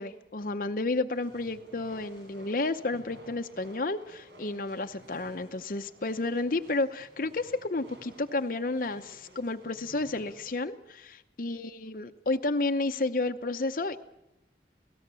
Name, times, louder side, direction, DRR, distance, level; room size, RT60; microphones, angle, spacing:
voice 1, 0.0-14.0, left 2 dB, 50° left, 7 dB, 0.7 m, -31 dB
sound 1, 1.1-10.6, right 1 dB, 80° right, 7.5 m, -54 dB
28.5 x 18.0 x 6.9 m, 0.88 s
head